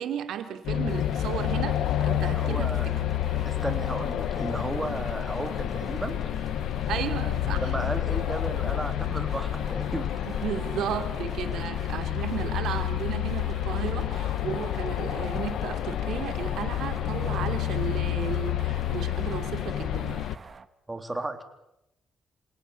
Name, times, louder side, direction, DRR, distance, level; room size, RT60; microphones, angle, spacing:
voice 1, 0.0-3.1 6.9-7.7 10.2-20.2, right 9 dB, 75° right, 8 dB, 3.0 m, -34 dB
sound 1, 0.6-20.4, left 12 dB, 75° left, 1.1 m, -29 dB
sound 2, 0.9-20.7, right 5 dB, 35° right, 1.6 m, -46 dB
voice 2, 2.4-2.9 3.5-6.2 7.6-10.1 20.9-21.4, right 2 dB, 15° right, 7 dB, 3.5 m, -34 dB
28.0 x 18.0 x 8.7 m, 0.84 s
cardioid pair, 90°, 0 cm